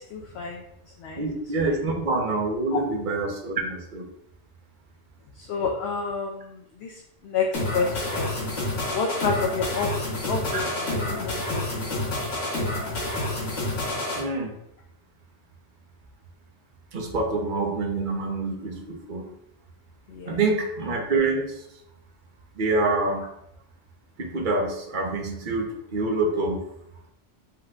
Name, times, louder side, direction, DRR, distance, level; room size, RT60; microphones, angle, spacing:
voice 1, 0.1-0.6 1.0-1.2 2.7-2.8 5.4-8.4 8.9-9.9 10.2-12.1 20.1-20.4, left 5 dB, 65° left, 1 dB, 0.8 m, -29 dB
voice 2, 1.2-4.1 10.5-10.6 14.2-14.5 16.9-19.3 20.3-21.6 22.6-23.3 24.2-26.6, right 3 dB, 50° right, 2 dB, 0.8 m, -26 dB
sound 1, 7.5-14.2, left 1 dB, 90° left, 1.7 m, -29 dB
5.6 x 2.2 x 3.8 m, 0.77 s
omnidirectional pair, 1.2 m